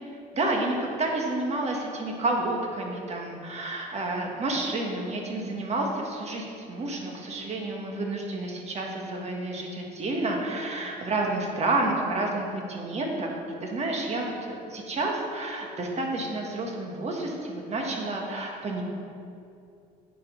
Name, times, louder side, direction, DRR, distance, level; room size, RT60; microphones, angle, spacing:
voice 1, 0.3-18.8, right 2 dB, 40° right, 0 dB, 1.7 m, -30 dB
9.3 x 5.3 x 6.2 m, 2.5 s
cardioid pair, 110°, 17 cm